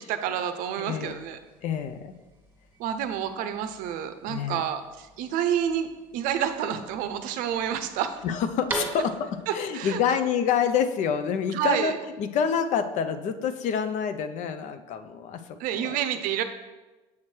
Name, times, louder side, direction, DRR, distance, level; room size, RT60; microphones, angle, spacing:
voice 1, 0.0-1.4 2.8-8.2 9.5-10.0 11.5-11.9 15.6-16.4, right 9 dB, 65° right, 9 dB, 0.6 m, -29 dB
voice 2, 0.8-1.1 1.6-2.1 4.3-4.6 8.2-16.0, left 7 dB, 55° left, 10 dB, 0.5 m, -27 dB
sound 1, 1.0-9.5, right 2 dB, 15° right, 1.5 m, -42 dB
7.2 x 3.1 x 4.4 m, 1.1 s
supercardioid pair, 100°, 15 cm